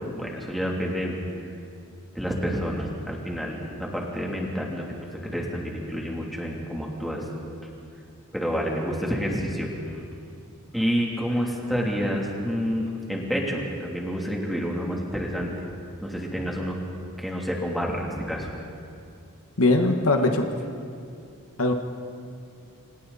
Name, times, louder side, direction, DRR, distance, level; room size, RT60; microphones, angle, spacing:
voice 1, 0.1-1.2 2.1-4.8 5.2-7.2 8.3-10.0 10.7-15.5 16.0-16.8 17.2-18.5, equal, ahead, -2 dB, 3.1 m, -28 dB
voice 2, 19.6-20.5 21.6-21.7, left 2 dB, 65° left, 4 dB, 1.5 m, -20 dB
29.0 x 26.0 x 4.2 m, 2.5 s
head